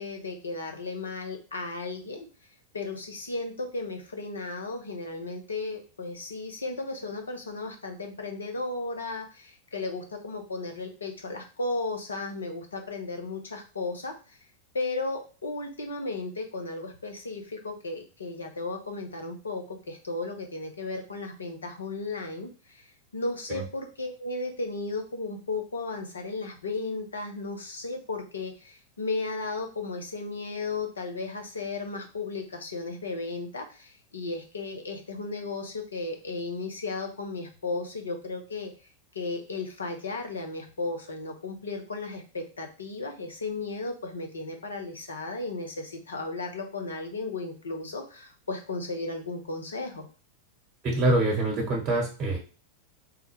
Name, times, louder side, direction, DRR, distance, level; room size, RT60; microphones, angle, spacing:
voice 1, 0.0-2.3 2.7-14.4 14.7-22.9 23.1-38.7 39.1-50.0, left 3 dB, 70° left, 4 dB, 0.7 m, -35 dB
voice 2, 50.8-52.4, right 2 dB, 30° right, 0 dB, 1.0 m, -25 dB
3.5 x 2.1 x 3.1 m, 0.35 s
figure-of-eight pair, 90°, 0 cm